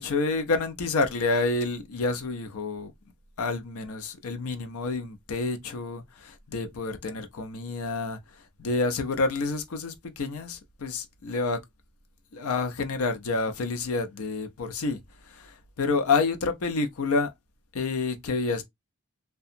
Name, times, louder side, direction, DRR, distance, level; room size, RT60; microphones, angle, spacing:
voice 1, 0.0-2.9 3.4-11.6 12.3-15.0 15.3-17.3 17.7-18.6, left 3 dB, 80° left, 0.5 m, -28 dB
2.7 x 2.2 x 2.4 m
head